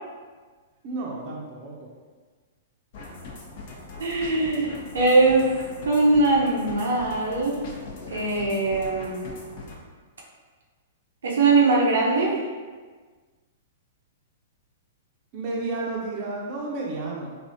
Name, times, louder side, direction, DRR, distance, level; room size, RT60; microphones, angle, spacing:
voice 1, 0.8-1.9 15.3-17.4, right 3 dB, 40° right, -3 dB, 0.6 m, -32 dB
sound 1, 2.9-9.8, left 3 dB, 55° left, 0.8 m, -41 dB
voice 2, 4.0-5.5 5.8-7.6 8.1-9.2 11.2-12.3, right 3 dB, 75° right, -3 dB, 0.7 m, -21 dB
3.3 x 2.6 x 2.6 m, 1.4 s
hypercardioid pair, 115°, 0 cm